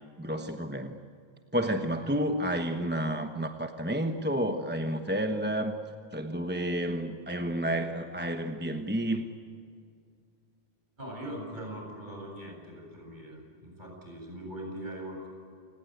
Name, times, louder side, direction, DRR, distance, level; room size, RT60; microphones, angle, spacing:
voice 1, 0.2-1.0 1.5-5.8 6.1-9.3, right 1 dB, 10° right, 5 dB, 1.1 m, -30 dB
voice 2, 11.0-15.3, right 1 dB, 45° right, 0 dB, 8.2 m, -41 dB
29.0 x 19.5 x 9.4 m, 2.3 s
omnidirectional pair, 1.1 m